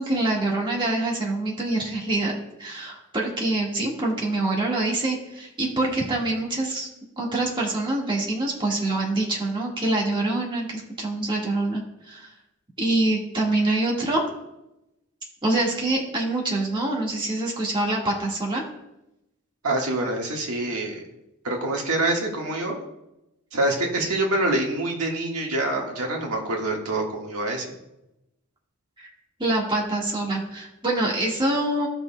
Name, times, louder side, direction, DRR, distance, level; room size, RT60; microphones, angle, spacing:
voice 1, 0.0-6.9 7.2-12.3 12.8-14.2 15.4-18.6 29.0-29.1 29.4-31.9, right 2 dB, 20° right, -3 dB, 1.6 m, -25 dB
voice 2, 19.6-21.0 21.4-22.8 23.5-27.7, right 2 dB, 85° right, 0 dB, 1.6 m, -26 dB
16.5 x 5.7 x 2.2 m, 0.90 s
head